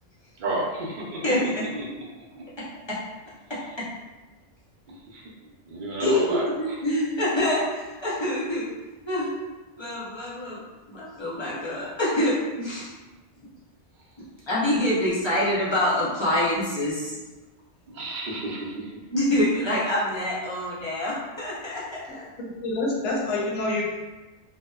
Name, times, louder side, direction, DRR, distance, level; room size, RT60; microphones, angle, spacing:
voice 1, 0.4-1.2 1.7-1.8 5.1-5.2 5.7-6.4 17.9-18.7, right 2 dB, 55° right, -3 dB, 0.6 m, -30 dB
voice 2, 1.2-1.6 2.6-3.0 3.5-3.9 6.0-8.7 9.1-9.3 9.8-10.6 10.9-12.9 14.5-17.2 19.1-22.3, left 1 dB, 40° left, -8 dB, 0.4 m, -26 dB
voice 3, 22.6-23.9, left 2 dB, 80° left, -2 dB, 0.9 m, -26 dB
2.7 x 2.0 x 2.3 m, 1.2 s
omnidirectional pair, 1.2 m